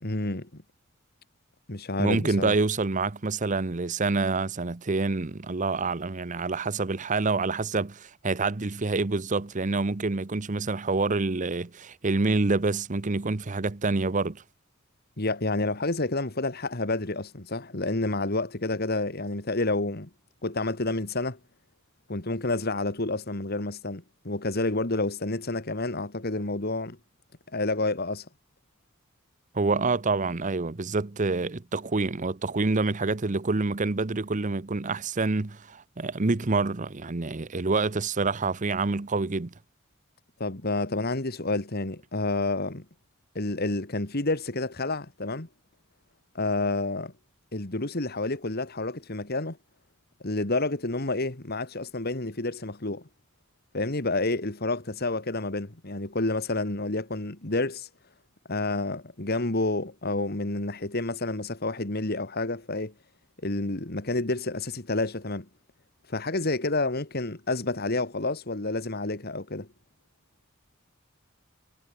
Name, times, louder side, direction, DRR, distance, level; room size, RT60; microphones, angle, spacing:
voice 1, 0.0-0.6 1.7-2.6 15.2-20.1 20.4-21.4 22.1-27.0 27.5-28.3 40.4-42.8 43.3-45.5 46.3-47.1 47.5-49.6 50.2-53.0 53.7-57.9 58.5-62.9 63.4-65.5 66.1-69.7, left 2 dB, 50° left, 2.2 m, -29 dB
voice 2, 2.0-14.4 29.5-39.5, right 3 dB, 35° right, 0.8 m, -27 dB
head